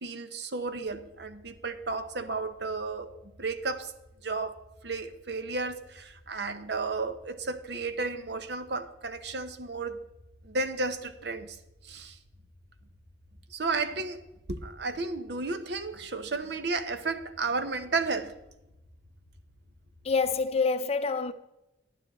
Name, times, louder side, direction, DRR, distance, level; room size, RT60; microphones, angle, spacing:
voice 1, 0.0-3.1 3.4-3.9 4.2-4.6 4.8-10.0 10.4-11.6 11.8-12.2 13.5-14.2 14.5-18.3, right 3 dB, 65° right, 0.9 m, -33 dB
sound 1, 0.6-20.4, left 1 dB, 45° right, 3.4 m, -58 dB
voice 2, 20.0-21.3, left 4 dB, 35° left, 0.5 m, -26 dB
11.0 x 9.7 x 4.1 m
head